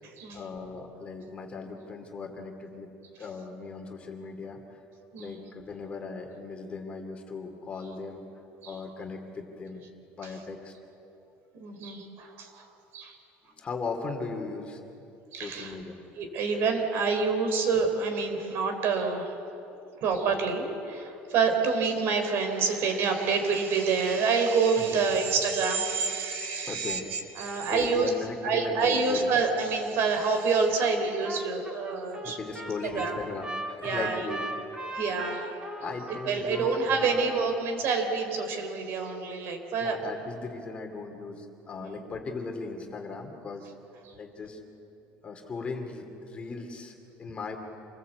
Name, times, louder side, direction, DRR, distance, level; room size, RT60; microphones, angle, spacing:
voice 1, 0.3-2.9 3.2-4.8 5.2-8.2 8.6-9.8 10.2-10.7 13.4-14.8 15.4-16.0 19.9-20.0 24.8-25.0 26.6-27.0 27.7-29.3 32.2-34.5 35.8-37.1 39.8-43.7 44.2-44.6 45.2-47.6, left 4 dB, 25° left, 3 dB, 2.6 m, -38 dB
voice 2, 5.1-5.4 8.6-8.7 11.5-12.7 12.9-13.2 15.3-15.7 16.2-19.3 20.0-28.1 28.4-32.4 32.9-33.1 33.8-34.4 34.9-35.6 36.3-40.0 41.8-42.0, right 5 dB, 55° right, 6 dB, 3.7 m, -27 dB
Trumpet, 30.8-31.0 31.2-37.5, right 1 dB, 15° right, 2.3 m, -38 dB
27.5 x 20.0 x 8.1 m, 2.9 s
cardioid pair, 150°, 5 cm